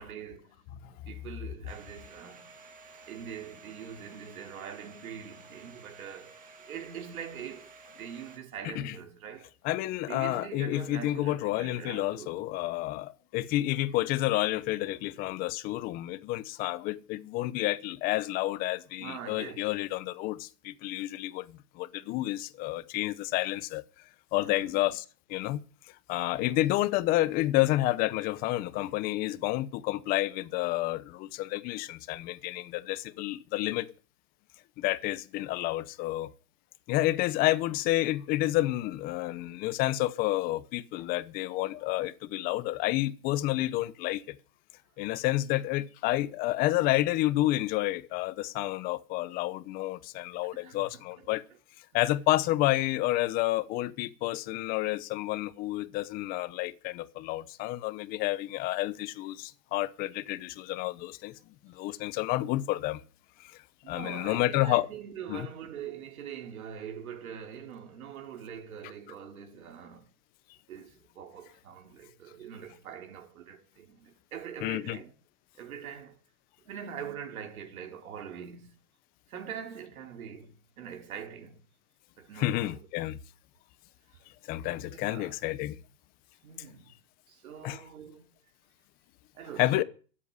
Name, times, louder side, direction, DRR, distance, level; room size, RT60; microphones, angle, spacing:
voice 1, 0.0-2.5 3.1-9.5 10.1-12.4 19.0-19.7 24.4-24.8 26.3-26.6 50.4-51.3 51.9-52.0 63.8-70.1 70.7-75.1 75.5-76.2 76.7-78.8 79.3-81.6 82.2-82.9 84.9-85.3 86.4-87.0 87.3-88.3 89.3-89.8, right 8 dB, 65° right, 3.9 m, -43 dB
Domestic sounds home sounds, 1.7-8.4, right 4 dB, 15° right, 1.9 m, -52 dB
voice 2, 9.6-23.8 24.3-25.0 25.3-25.6 26.1-33.9 34.8-36.3 36.9-44.4 45.0-51.4 51.9-61.3 61.6-63.0 63.4-63.5 63.9-64.9 65.3-65.5 74.6-75.0 82.4-83.2 84.5-85.8 87.6-87.8 89.6-89.8, left 16 dB, 20° left, 0.8 m, -30 dB
13.5 x 8.5 x 9.6 m
hypercardioid pair, 150°, 45 cm